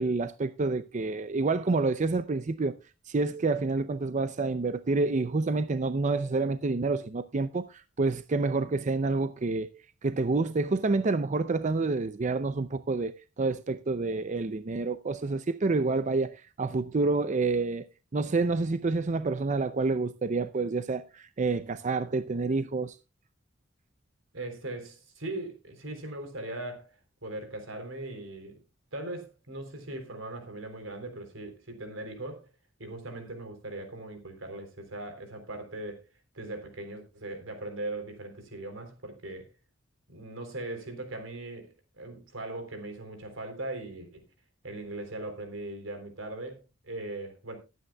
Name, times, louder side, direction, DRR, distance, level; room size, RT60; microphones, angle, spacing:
voice 1, 0.0-2.8 3.1-9.7 10.0-17.8 18.1-23.0, right 3 dB, 40° right, 0.5 m, -28 dB
voice 2, 24.3-26.9 27.2-28.6 28.9-32.5 32.8-36.0 36.3-39.5 40.1-44.2 44.6-47.6, right 2 dB, 85° right, 3.6 m, -39 dB
19.5 x 9.3 x 2.3 m
head